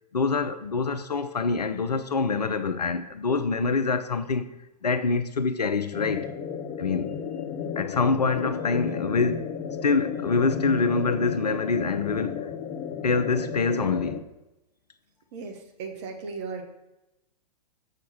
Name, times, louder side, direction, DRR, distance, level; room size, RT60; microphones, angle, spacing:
voice 1, 0.1-4.5 4.8-6.3 6.8-7.2 7.8-9.5 9.8-12.5 13.0-14.2, left 4 dB, 75° left, 0.7 m, -25 dB
sound 1, 5.9-14.2, left 7 dB, 25° left, 0.7 m, -34 dB
voice 2, 15.3-16.6, right 4 dB, 45° right, 1.4 m, -36 dB
7.2 x 6.5 x 4.4 m
figure-of-eight pair, 105°, 21 cm